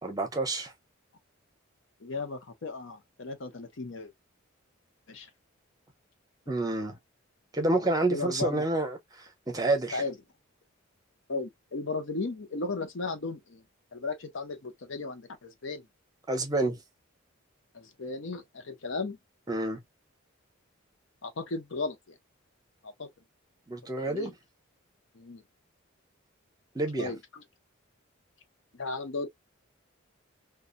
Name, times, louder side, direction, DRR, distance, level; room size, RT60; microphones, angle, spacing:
voice 1, 0.0-0.7 6.5-7.0 7.5-9.0 9.5-10.0 16.3-16.8 19.5-19.8 23.7-24.3 26.7-27.1, right 2 dB, 15° right, 0.7 m, -28 dB
voice 2, 2.0-4.1 5.1-5.3 8.1-8.6 9.9-10.1 11.3-13.6 13.9-15.9 17.7-19.2 21.2-22.1 22.8-23.1 24.0-24.3 25.1-25.4 27.0-27.4 28.7-29.3, left 3 dB, 65° left, 0.7 m, -35 dB
2.6 x 2.3 x 2.5 m
head